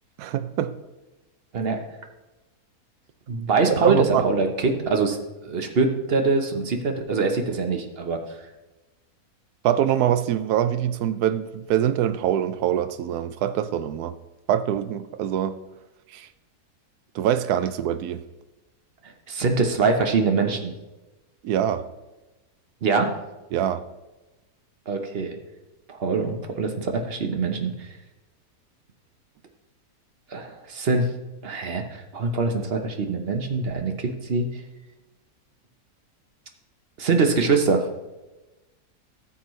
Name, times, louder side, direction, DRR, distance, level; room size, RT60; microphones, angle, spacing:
voice 1, 0.2-0.7 3.8-4.3 9.6-14.1 14.5-15.5 16.1-16.3 17.1-18.2 21.4-21.8 23.5-23.8, right 10 dB, 80° right, 13 dB, 1.1 m, -24 dB
voice 2, 3.3-5.2 5.4-8.2 19.3-20.7 22.8-23.1 24.9-25.4 25.9-27.9 30.3-31.1 31.4-34.5 37.0-37.8, right 4 dB, 45° right, 5 dB, 1.0 m, -23 dB
13.5 x 7.2 x 3.1 m, 1.1 s
omnidirectional pair, 1.7 m